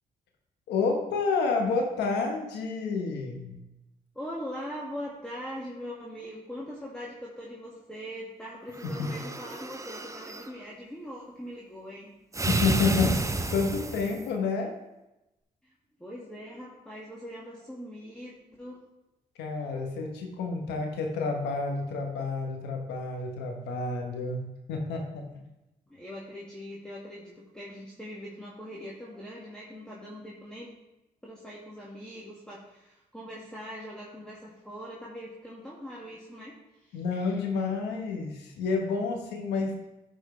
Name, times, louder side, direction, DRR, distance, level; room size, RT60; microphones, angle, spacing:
voice 1, 0.7-3.6 8.8-9.1 12.5-13.3 13.5-14.7 19.4-25.3 36.9-39.8, left 4 dB, 85° left, 2 dB, 1.1 m, -29 dB
voice 2, 4.2-12.1 15.6-15.7 16.0-18.8 25.9-30.7 31.2-37.0, equal, 5° left, -6 dB, 1.7 m, -41 dB
sound 1, 8.7-10.5 12.3-14.3, right 2 dB, 20° right, 0.6 m, -31 dB
10.5 x 4.4 x 3.2 m, 0.95 s
supercardioid pair, 50°, 17 cm